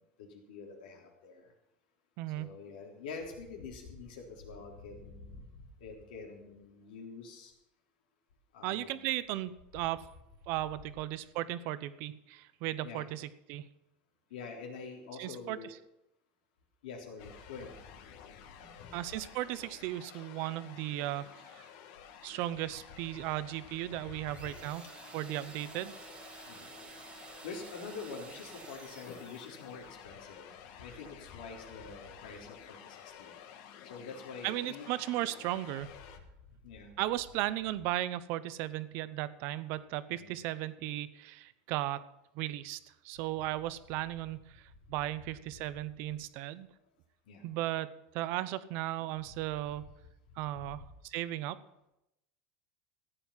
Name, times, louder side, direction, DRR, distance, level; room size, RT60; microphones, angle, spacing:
voice 1, 0.2-1.5 2.3-5.5 5.8-7.5 8.5-9.1 12.8-13.1 14.3-15.7 16.8-17.7 18.8-18.9 20.1-20.3 24.3-24.9 26.5-26.7 27.4-30.5 30.8-33.4 33.8-34.9 36.6-36.9 40.1-40.4 47.3-47.6, left 4 dB, 90° left, 1 dB, 3.5 m, -46 dB
voice 2, 2.2-2.6 8.6-10.1 10.5-13.6 15.2-15.6 18.9-21.7 22.2-24.9 25.1-25.9 34.4-35.9 37.0-42.0 42.3-42.8 43.0-46.7 47.4-47.9 48.1-49.9 50.4-51.6, right 14 dB, 55° right, 15 dB, 0.8 m, -36 dB
sound 1, 17.2-36.2, left 9 dB, 60° left, 1.6 m, -52 dB
sound 2, 24.3-29.9, right 5 dB, 20° right, 1.4 m, -52 dB
14.5 x 9.4 x 5.7 m, 0.86 s
supercardioid pair, 145°, 5 cm